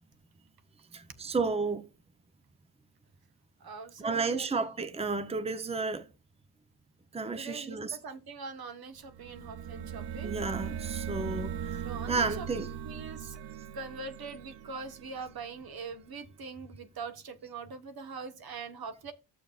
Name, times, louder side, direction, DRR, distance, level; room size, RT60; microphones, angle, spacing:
voice 1, 0.9-1.9 4.0-6.1 7.1-8.0 10.2-12.7, right 4 dB, 15° right, 0.9 m, -32 dB
voice 2, 3.6-4.5 7.3-10.4 11.8-13.4 13.7-19.1, right 4 dB, 60° right, 1.5 m, -42 dB
sound 1, 9.0-15.8, right 8 dB, 90° right, 0.6 m, -39 dB
12.5 x 7.0 x 2.4 m
cardioid pair, 90°, 41 cm